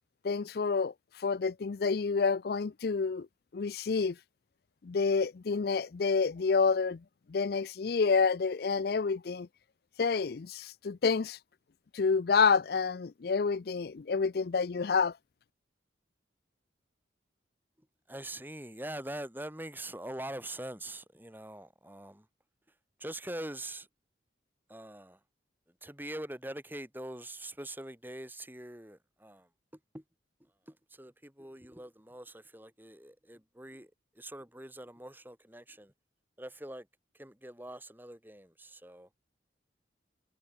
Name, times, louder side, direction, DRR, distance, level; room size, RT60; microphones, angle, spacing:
voice 1, 0.2-3.3 3.5-4.1 4.8-7.0 7.3-9.5 10.0-11.4 11.9-15.1, left 5 dB, 55° left, 0.4 m, -28 dB
voice 2, 18.1-22.3 23.0-23.9 24.7-25.2 25.8-29.5 29.9-30.0 30.4-35.9 36.4-36.9 37.1-39.1, right 1 dB, 10° right, 3.9 m, -43 dB
head